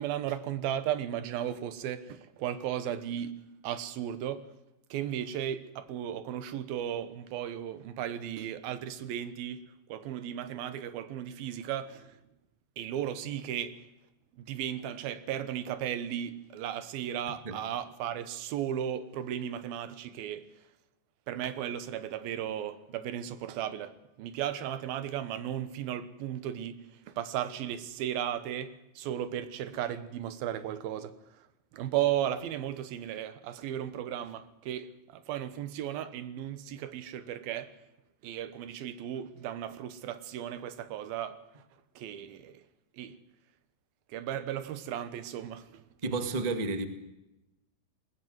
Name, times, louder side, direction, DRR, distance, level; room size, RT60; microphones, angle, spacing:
voice 1, 0.0-3.3 3.6-4.4 4.9-9.6 9.9-12.2 12.8-13.8 14.3-20.5 21.3-23.9 24.2-26.8 27.1-31.5 31.7-37.7 38.2-41.6 42.0-42.6 42.9-43.2 44.1-45.8, right 10 dB, 75° right, 3.0 m, -35 dB
voice 2, 46.0-46.9, right 3 dB, 40° right, 0.5 m, -31 dB
20.0 x 20.0 x 8.0 m
omnidirectional pair, 4.3 m